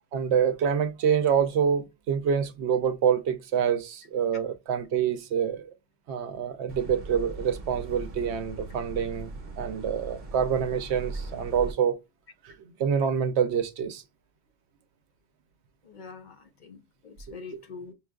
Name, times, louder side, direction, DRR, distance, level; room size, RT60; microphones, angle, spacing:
voice 1, 0.1-5.7 6.1-12.0 12.4-14.0, right 7 dB, 85° right, 0.9 m, -26 dB
sound 1, 6.7-11.7, right 3 dB, 60° right, 1.0 m, -39 dB
voice 2, 15.8-17.9, left 5 dB, 50° left, 0.7 m, -44 dB
5.6 x 2.4 x 2.2 m
omnidirectional pair, 1.1 m